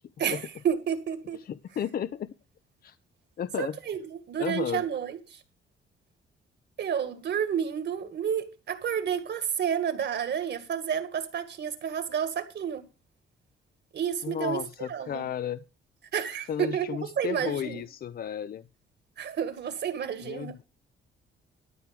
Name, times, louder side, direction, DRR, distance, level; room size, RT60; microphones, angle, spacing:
voice 1, 0.2-1.4 3.6-4.0 4.3-5.4 6.8-12.8 13.9-15.3 16.1-16.9 17.2-17.8 19.2-20.6, right 8 dB, 60° right, 2.0 m, -30 dB
voice 2, 1.4-2.3 2.8-3.0 3.4-3.8 4.4-4.8 14.2-15.6 16.5-18.6 20.2-20.6, left 9 dB, 50° left, 0.6 m, -33 dB
13.0 x 4.7 x 7.6 m
cardioid pair, 90°, 20 cm